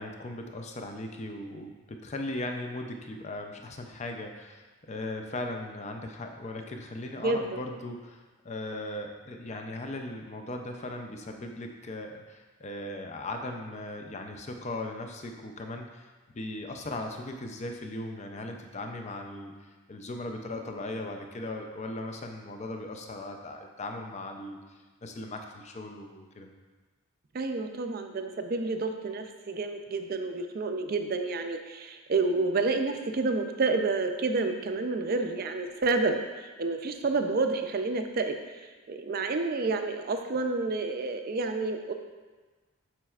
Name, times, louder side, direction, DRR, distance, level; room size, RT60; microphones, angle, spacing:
voice 1, 0.0-16.1 16.3-24.6 25.0-26.5, left 2 dB, 30° left, 3 dB, 0.5 m, -38 dB
voice 2, 7.2-7.6 27.3-38.4 38.9-41.9, right 3 dB, 40° right, 5 dB, 0.4 m, -29 dB
7.3 x 6.2 x 2.4 m, 1.3 s
head